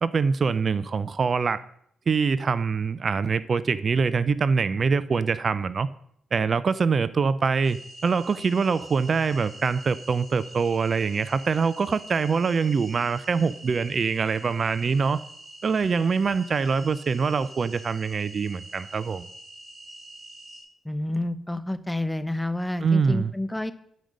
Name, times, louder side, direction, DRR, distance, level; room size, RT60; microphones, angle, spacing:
voice 1, 0.0-1.6 2.1-5.9 6.3-15.2 15.6-19.3 22.8-23.3, right 5 dB, 50° right, 0.4 m, -24 dB
sound 1, 7.6-20.6, right 2 dB, 25° right, 3.5 m, -45 dB
voice 2, 20.8-23.7, left 1 dB, 10° left, 0.7 m, -29 dB
9.4 x 5.2 x 6.3 m
cardioid pair, 65°, 0 cm